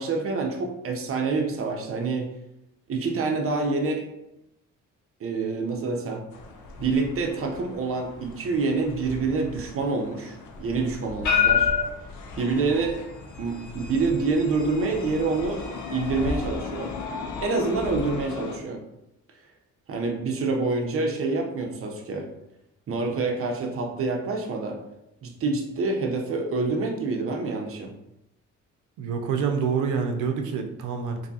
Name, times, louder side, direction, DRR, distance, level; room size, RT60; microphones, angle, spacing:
voice 1, 0.0-2.3 2.9-4.1 5.2-6.3 6.8-11.7 12.4-13.0 13.4-15.6 15.9-16.9 17.4-18.8 19.9-22.3 22.9-24.8 25.2-27.9, right 3 dB, 50° right, 2 dB, 0.7 m, -27 dB
sound 1, 6.3-18.6, left 6 dB, 75° left, 0.6 m, -31 dB
voice 2, 29.0-31.3, right 6 dB, 85° right, 5 dB, 0.6 m, -27 dB
3.5 x 2.7 x 2.7 m, 0.85 s
cardioid pair, 90°, 30 cm